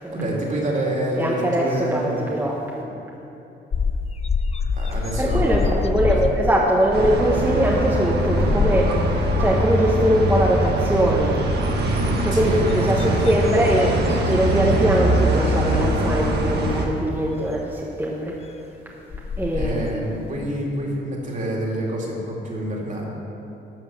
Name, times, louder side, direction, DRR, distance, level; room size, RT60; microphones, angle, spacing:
voice 1, 0.1-2.2 4.7-5.6 6.1-6.2 11.8-13.2 19.5-23.0, right 1 dB, 40° right, -2 dB, 2.7 m, -27 dB
voice 2, 1.2-3.0 5.2-11.4 12.2-18.4 19.4-20.1, right 1 dB, 10° right, -3 dB, 1.2 m, -22 dB
sound 1, 3.7-9.8 10.1-10.5 10.8-11.8 12.4-14.7 15.1-15.3 16.4-16.5 18.6-18.7 19.1-20.0, left 5 dB, 30° left, 0.5 m, -26 dB
sound 2, 6.9-16.9, right 1 dB, 55° right, 1.7 m, -22 dB
12.0 x 6.0 x 6.7 m, 2.9 s
cardioid pair, 90°, 20 cm